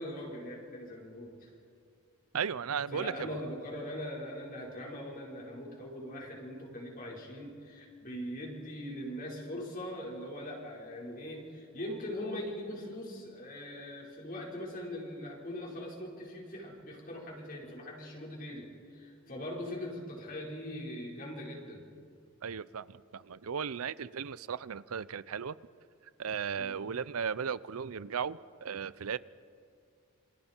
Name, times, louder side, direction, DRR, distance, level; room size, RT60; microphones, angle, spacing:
voice 1, 0.0-1.5 2.9-21.8 26.6-26.8, left 1 dB, 40° left, -2 dB, 4.8 m, -41 dB
voice 2, 2.3-3.4 22.4-25.6 26.2-29.2, right 7 dB, 80° right, 18 dB, 0.6 m, -36 dB
28.0 x 26.5 x 4.5 m, 2.3 s
head